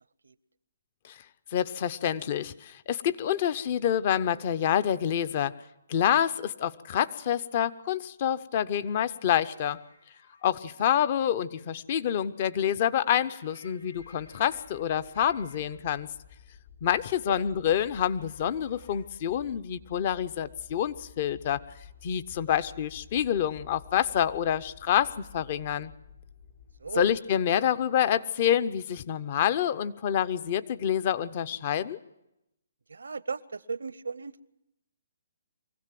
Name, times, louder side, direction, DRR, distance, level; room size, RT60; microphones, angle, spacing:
voice 1, 1.5-5.5 5.9-9.8 10.4-16.1 16.8-21.6 22.0-25.9 27.0-32.0, left 9 dB, 45° left, 15 dB, 0.8 m, -27 dB
sound 1, 9.3-10.5 13.2-15.8 17.8-19.1, left 3 dB, 85° left, 5.1 m, -59 dB
sound 2, 14.0-27.2, left 7 dB, 60° left, 3.9 m, -53 dB
voice 2, 26.8-27.1 32.9-34.4, right 4 dB, 85° right, 19 dB, 0.7 m, -35 dB
24.0 x 16.0 x 7.7 m, 0.88 s
hypercardioid pair, 145°, 0 cm